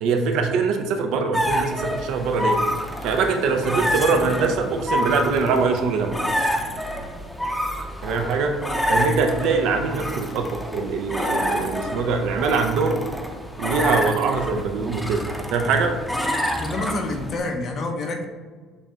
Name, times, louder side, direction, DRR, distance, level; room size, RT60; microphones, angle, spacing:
voice 1, 0.0-2.6 3.0-6.2 8.0-8.5 8.9-13.1 13.6-15.2 15.5-16.0, right 4 dB, 70° right, 5 dB, 0.5 m, -23 dB
sound 1, 1.3-17.4, equal, 5° left, 0.7 m, -28 dB
voice 2, 16.5-18.2, left 2 dB, 50° left, 3 dB, 0.7 m, -28 dB
6.9 x 2.8 x 2.3 m, 1.5 s
supercardioid pair, 80°, 0 cm